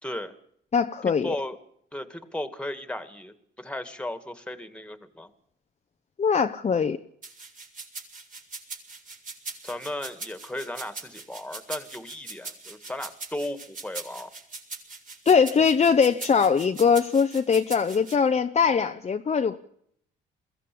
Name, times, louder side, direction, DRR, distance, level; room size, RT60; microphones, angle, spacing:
voice 1, 0.0-0.3 1.1-1.6 1.9-5.3 9.6-14.3, left 1 dB, 5° left, 11 dB, 2.3 m, -35 dB
voice 2, 0.7-1.4 6.2-7.0 15.3-19.6, left 6 dB, 35° left, 6 dB, 0.9 m, -21 dB
sound 1, 7.2-18.2, right 4 dB, 40° right, 4.9 m, -40 dB
22.0 x 16.0 x 8.7 m, 0.69 s
cardioid pair, 90°, 20 cm